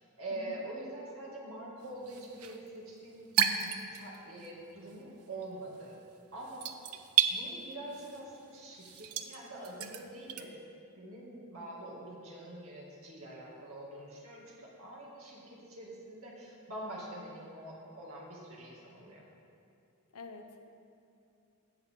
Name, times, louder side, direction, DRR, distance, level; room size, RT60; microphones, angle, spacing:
voice 1, 0.0-3.3 3.6-6.0 6.3-7.0 7.3-10.6 11.0-19.3, right 1 dB, 70° right, -4 dB, 2.4 m, -45 dB
sound 1, 1.8-4.5 4.8-10.4, right 9 dB, 85° right, 0.6 m, -33 dB
voice 2, 20.1-20.7, left 3 dB, 85° left, 5 dB, 0.9 m, -48 dB
17.0 x 6.7 x 3.8 m, 2.6 s
head